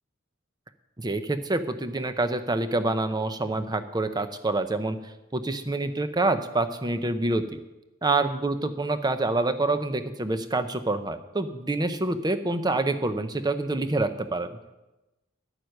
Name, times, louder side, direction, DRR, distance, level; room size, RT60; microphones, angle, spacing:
voice 1, 1.0-5.0 5.3-7.6 8.0-14.5, right 2 dB, 20° right, 10 dB, 0.7 m, -27 dB
10.5 x 9.2 x 6.5 m, 1.0 s
head